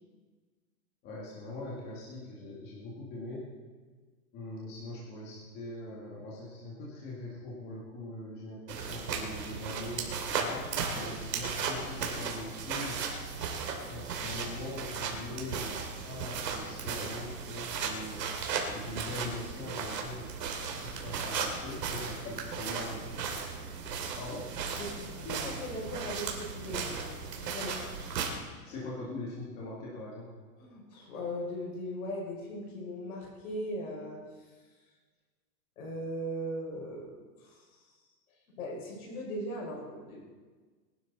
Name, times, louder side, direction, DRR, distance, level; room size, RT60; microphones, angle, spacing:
voice 1, 1.0-3.5 4.3-10.7 10.9-13.0 13.9-15.8 16.0-18.2 18.7-23.4 24.2-24.5 28.6-30.3, left 2 dB, 20° left, -6 dB, 2.2 m, -42 dB
sound 1, 8.7-28.3, right 5 dB, 75° right, 3.0 m, -36 dB
voice 2, 24.8-27.1 27.4-27.8 30.6-34.5 35.8-38.0 38.6-40.2, equal, 60° left, -1 dB, 5.5 m, -39 dB
21.0 x 11.5 x 4.2 m, 1.4 s
supercardioid pair, 180°, 49 cm